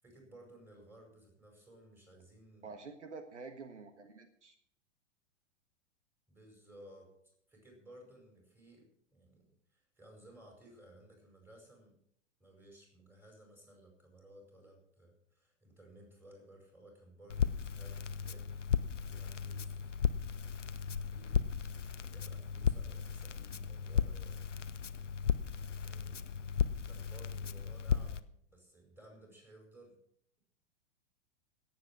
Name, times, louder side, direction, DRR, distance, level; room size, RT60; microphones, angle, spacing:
voice 1, 0.0-2.7 6.3-7.1 7.5-11.9 12.4-18.5 19.0-19.9 20.2-20.5 21.0-21.4 21.8-24.3 25.8-26.2 26.8-29.9, right 1 dB, 5° right, 1 dB, 5.1 m, -58 dB
voice 2, 2.6-4.5, right 4 dB, 70° right, 8 dB, 1.6 m, -48 dB
Crackle, 17.3-28.2, left 6 dB, 85° left, 0.7 m, -35 dB
17.0 x 7.7 x 6.1 m, 0.66 s
figure-of-eight pair, 100°, 36 cm